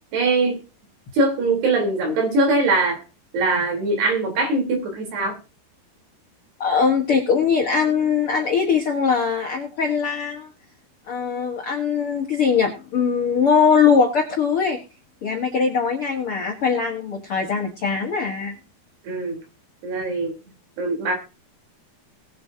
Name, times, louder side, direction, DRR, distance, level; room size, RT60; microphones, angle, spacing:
voice 1, 0.1-0.6 1.1-3.0 3.3-5.3 19.0-19.4 19.8-20.3 20.8-21.1, right 2 dB, 70° right, 1 dB, 5.9 m, -21 dB
voice 2, 6.6-10.5 11.1-14.8 15.2-18.6, left 6 dB, 60° left, 1 dB, 1.5 m, -21 dB
20.0 x 8.0 x 2.8 m, 0.31 s
omnidirectional pair, 5.0 m